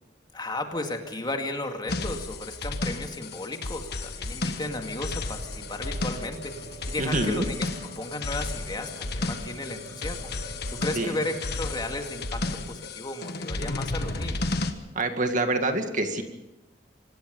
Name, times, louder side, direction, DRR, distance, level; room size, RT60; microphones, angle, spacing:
voice 1, 0.3-7.7 8.0-12.4 12.7-14.6, left 2 dB, 25° left, 4 dB, 2.3 m, -34 dB
sound 1, 1.9-14.7, left 2 dB, 60° left, 1.5 m, -33 dB
sound 2, 4.6-12.8, right 1 dB, 65° right, 4.8 m, -45 dB
voice 2, 7.0-7.5 11.0-11.2 15.0-16.2, right 2 dB, 45° right, 6 dB, 2.1 m, -26 dB
25.5 x 19.5 x 5.4 m, 0.96 s
head